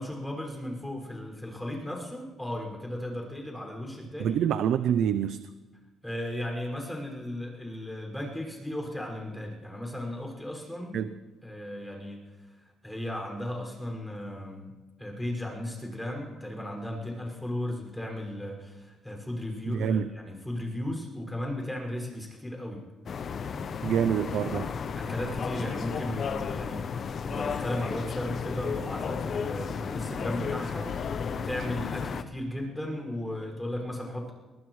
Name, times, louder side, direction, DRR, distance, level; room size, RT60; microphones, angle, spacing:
voice 1, 0.0-4.4 6.0-11.0 11.4-12.2 12.8-22.8 25.0-34.3, left 1 dB, 5° left, 0 dB, 5.8 m, -35 dB
voice 2, 4.2-5.5 10.9-11.2 19.7-20.1 23.8-24.7, right 9 dB, 75° right, 12 dB, 0.5 m, -27 dB
sound 1, 23.1-32.2, left 6 dB, 55° left, 0.8 m, -33 dB
22.5 x 18.5 x 3.2 m, 1.2 s
cardioid pair, 90°, 0 cm